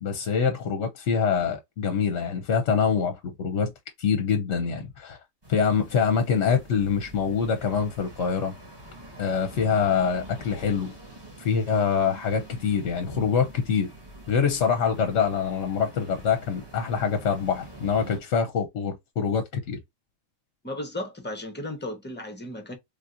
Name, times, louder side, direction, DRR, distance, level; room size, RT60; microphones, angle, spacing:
voice 1, 0.0-3.7 4.0-5.2 5.5-8.6 9.2-10.9 11.4-13.9 14.3-19.8, left 6 dB, 65° left, 0.9 m, -25 dB
sound 1, 5.4-18.2, right 2 dB, 20° right, 1.2 m, -45 dB
voice 2, 20.6-22.7, left 1 dB, 10° left, 0.7 m, -35 dB
3.4 x 2.7 x 2.4 m
omnidirectional pair, 1.4 m